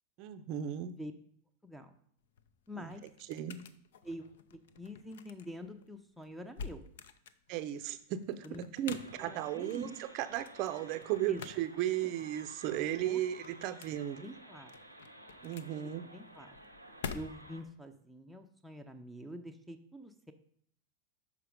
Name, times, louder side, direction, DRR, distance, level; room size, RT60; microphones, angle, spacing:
voice 1, 0.2-1.0 2.7-2.9 3.3-3.6 7.5-14.2 15.4-16.0, right 12 dB, 40° right, 12 dB, 0.5 m, -35 dB
voice 2, 1.6-2.0 2.7-3.0 4.0-4.3 4.5-6.8 8.4-8.6 9.2-10.0 11.3-11.4 12.0-12.1 13.0-13.2 14.2-14.7 16.1-16.6 17.1-20.3, equal, ahead, 9 dB, 0.6 m, -46 dB
sound 1, 2.2-17.7, left 6 dB, 60° left, 0.5 m, -49 dB
sound 2, 8.9-17.6, right 1 dB, 90° left, 0.8 m, -54 dB
6.7 x 5.0 x 4.9 m, 0.65 s
figure-of-eight pair, 90°, 0 cm